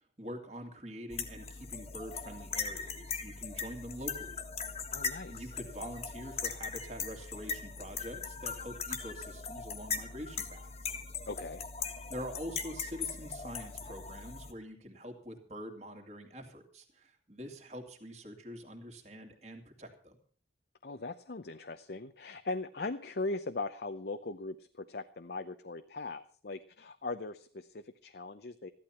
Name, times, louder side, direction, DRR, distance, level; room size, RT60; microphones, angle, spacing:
voice 1, 0.0-4.4 5.2-10.9 12.1-20.2, equal, 35° right, 2 dB, 2.5 m, -45 dB
sound 1, 1.1-14.5, left 5 dB, 35° left, 1.5 m, -40 dB
voice 2, 4.9-5.5 11.3-11.6 20.8-28.7, left 3 dB, 55° left, 9 dB, 0.7 m, -39 dB
15.0 x 11.5 x 5.8 m, 0.43 s
head